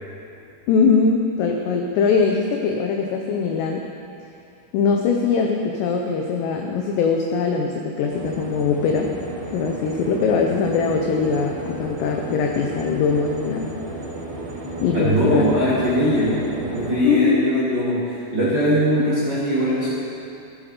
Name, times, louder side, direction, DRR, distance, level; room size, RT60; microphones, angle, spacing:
voice 1, 0.7-3.8 4.7-9.1 9.5-13.7 14.8-15.4 16.4-16.5 17.1-17.4, left 5 dB, 90° left, 2 dB, 2.4 m, -21 dB
sound 1, 8.1-17.0, right 2 dB, 60° right, 4.7 m, -33 dB
voice 2, 14.9-16.5 16.7-19.9, equal, 35° right, -11 dB, 1.8 m, -21 dB
16.5 x 8.7 x 4.9 m, 2.7 s
omnidirectional pair, 5.9 m